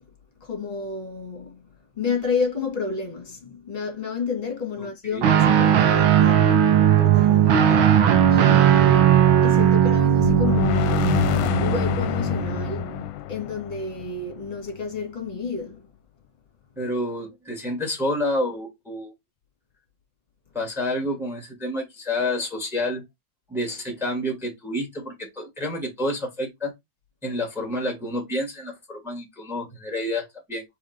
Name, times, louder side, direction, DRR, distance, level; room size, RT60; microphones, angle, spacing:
voice 1, 0.4-8.0 8.3-15.9, left 5 dB, 25° left, 2.4 m, -31 dB
Guitar, 5.2-12.9, right 9 dB, 80° right, 1.8 m, -18 dB
sound 1, 10.2-14.8, left 14 dB, 80° left, 1.4 m, -27 dB
voice 2, 16.8-19.1 20.5-23.0 23.5-26.7 27.2-30.6, left 1 dB, ahead, 2.2 m, -29 dB
5.0 x 4.4 x 4.5 m
omnidirectional pair, 2.2 m